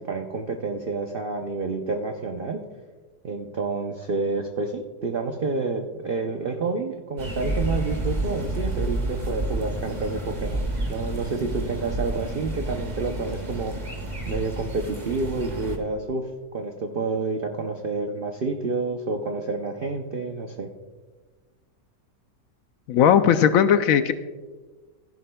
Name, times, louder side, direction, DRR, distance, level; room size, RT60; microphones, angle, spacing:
voice 1, 0.0-2.6 3.2-13.7 14.3-16.2 16.5-20.7, right 3 dB, 75° right, 4 dB, 0.5 m, -29 dB
sound 1, 7.2-15.8, right 1 dB, 25° right, 1.3 m, -30 dB
voice 2, 22.9-24.1, left 8 dB, 70° left, 11 dB, 0.8 m, -17 dB
15.5 x 11.0 x 2.2 m, 1.4 s
omnidirectional pair, 1.8 m